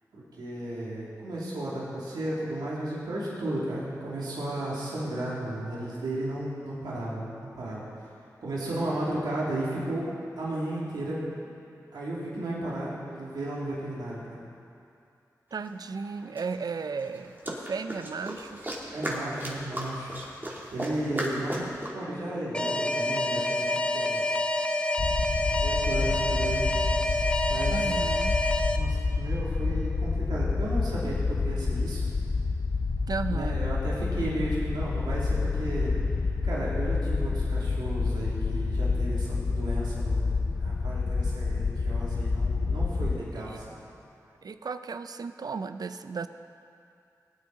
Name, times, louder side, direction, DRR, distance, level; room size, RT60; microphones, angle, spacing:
voice 1, 0.1-7.9 8.4-10.1 10.3-11.2 11.9-14.4 18.9-20.4 20.7-24.4 25.4-26.7 27.5-27.9 28.8-32.0 33.3-35.9 36.4-40.3 40.6-43.8, right 1 dB, 90° right, -7 dB, 2.8 m, -34 dB
voice 2, 15.5-18.6 21.6-21.8 27.7-28.4 33.1-33.6 43.5-43.6 44.4-46.3, right 5 dB, 65° right, 10 dB, 0.6 m, -35 dB
sound 1, 15.6-15.7 16.4-21.9, right 1 dB, 30° right, 2.9 m, -36 dB
Alarm, 22.5-28.8, left 1 dB, 15° left, 0.8 m, -27 dB
sound 2, 25.0-43.2, left 4 dB, 65° left, 0.9 m, -28 dB
18.5 x 9.5 x 4.0 m, 2.5 s
cardioid pair, 45°, 7 cm